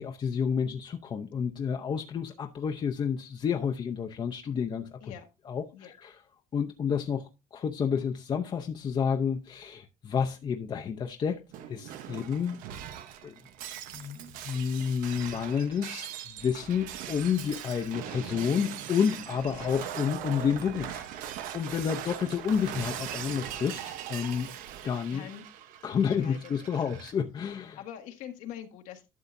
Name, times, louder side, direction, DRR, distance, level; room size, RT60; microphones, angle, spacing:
voice 1, 0.0-5.0 5.5-6.2 6.5-11.4 11.7-12.6 13.2-13.4 13.9-24.5 24.8-25.3 25.8-27.8, left 7 dB, 35° left, 0.7 m, -30 dB
Shatter, 11.5-27.1, right 10 dB, 90° right, 1.0 m, -40 dB
voice 2, 19.4-19.8 22.2-22.3 25.1-25.4 26.0-26.7 27.8-29.1, left 10 dB, 80° left, 1.5 m, -44 dB
12.0 x 7.1 x 2.6 m
cardioid pair, 145°, 14 cm